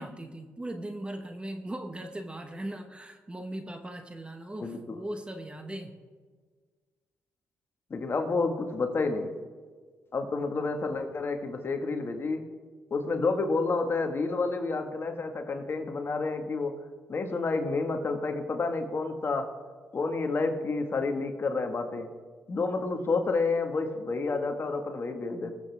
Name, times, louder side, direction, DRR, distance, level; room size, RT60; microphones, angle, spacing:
voice 1, 0.0-5.9, right 1 dB, 20° right, 6 dB, 1.3 m, -39 dB
voice 2, 4.6-5.0 7.9-9.3 10.1-12.4 12.9-16.7 17.1-19.5 19.9-22.1 22.5-25.6, left 3 dB, 45° left, 5 dB, 1.7 m, -29 dB
21.0 x 8.2 x 3.6 m, 1.5 s
cardioid pair, 70°, 6 cm